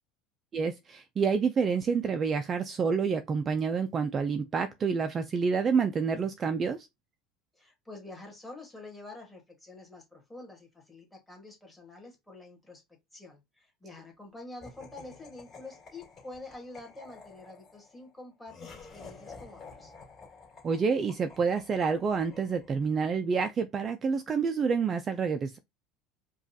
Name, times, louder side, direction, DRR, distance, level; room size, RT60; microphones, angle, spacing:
voice 1, 0.5-6.9 20.6-25.6, right 5 dB, 25° right, 0.3 m, -28 dB
voice 2, 7.5-12.8 13.1-19.9, left 2 dB, 5° left, 1.4 m, -47 dB
Laughter, 14.6-23.0, left 4 dB, 30° left, 1.9 m, -51 dB
5.0 x 2.3 x 2.7 m
supercardioid pair, 145°, 0 cm